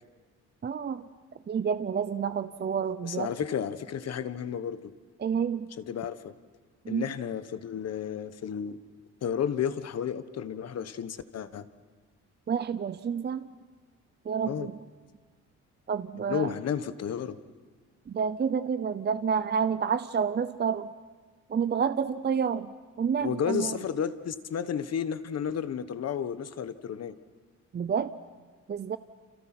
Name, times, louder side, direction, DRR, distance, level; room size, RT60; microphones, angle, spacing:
voice 1, 0.6-1.0 1.5-3.3 5.2-5.7 6.8-7.1 12.5-13.4 14.3-14.7 15.9-16.5 18.1-20.9 21.5-22.7 23.0-23.8 27.7-28.1 28.7-29.0, right 7 dB, 35° right, 13 dB, 0.7 m, -29 dB
voice 2, 3.0-4.9 5.8-6.3 6.9-8.8 9.2-11.7 14.4-14.7 16.1-17.4 23.2-27.2, left 8 dB, 55° left, 12 dB, 1.3 m, -32 dB
29.5 x 27.5 x 6.1 m, 1.5 s
cardioid pair, 90°, 30 cm